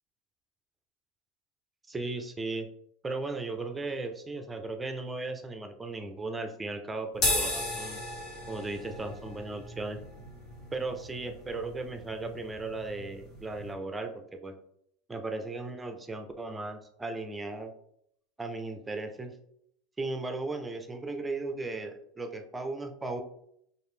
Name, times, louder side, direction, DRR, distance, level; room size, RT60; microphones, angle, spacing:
voice 1, 1.9-2.7 3.0-8.0 8.5-10.0 10.7-14.6 15.1-17.7 18.4-19.4 20.0-23.2, right 3 dB, 15° right, 6 dB, 0.6 m, -36 dB
sound 1, 7.1-13.7, left 1 dB, 50° left, 1.7 m, -36 dB
4.8 x 2.6 x 3.3 m, 0.71 s
supercardioid pair, 105°, 0 cm